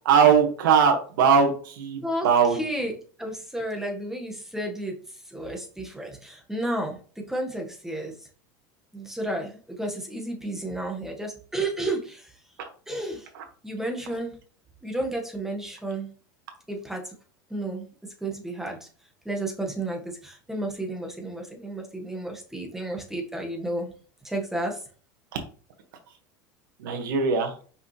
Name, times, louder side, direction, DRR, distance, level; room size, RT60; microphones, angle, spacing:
voice 1, 0.1-2.6 26.8-27.5, right 6 dB, 80° right, 4 dB, 1.8 m, -20 dB
voice 2, 2.0-5.0 5.3-7.0 7.3-8.1 8.9-12.3 12.9-13.3 13.6-14.4 14.8-16.1 16.7-17.1 17.5-17.9 18.2-18.9 19.2-23.9 24.2-24.8, right 1 dB, 5° right, 1 dB, 1.6 m, -32 dB
5.8 x 5.3 x 3.3 m, 0.41 s
supercardioid pair, 115°, 11 cm